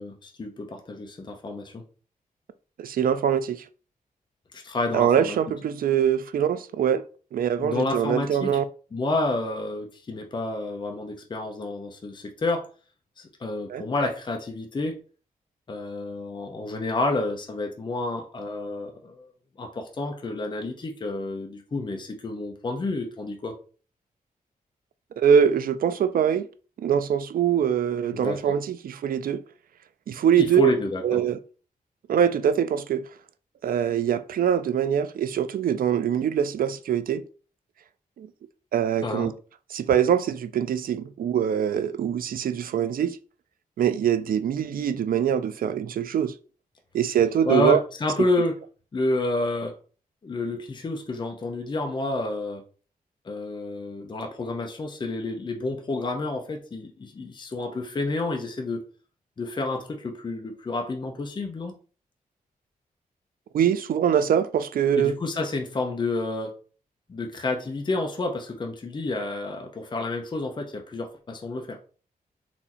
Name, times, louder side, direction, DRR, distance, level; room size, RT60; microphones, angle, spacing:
voice 1, 0.0-1.8 4.5-5.4 7.6-8.6 8.9-12.7 13.2-15.0 15.7-19.3 19.6-23.5 28.1-28.5 30.4-31.2 39.0-39.3 47.4-48.5 48.9-49.8 50.2-52.6 53.2-58.8 59.4-61.7 64.9-66.5 67.1-71.8, left 2 dB, 30° left, 0.7 m, -29 dB
voice 2, 2.8-3.6 4.9-7.0 7.3-8.6 13.7-13.8 25.2-26.5 26.8-29.4 30.1-30.7 31.0-31.4 32.1-33.0 33.6-37.2 38.2-38.3 38.7-39.3 39.7-43.2 43.8-46.3 46.9-47.8 63.5-65.2, right 8 dB, 75° right, 0.4 m, -23 dB
4.3 x 2.8 x 4.2 m
wide cardioid pair, 150°, 15 cm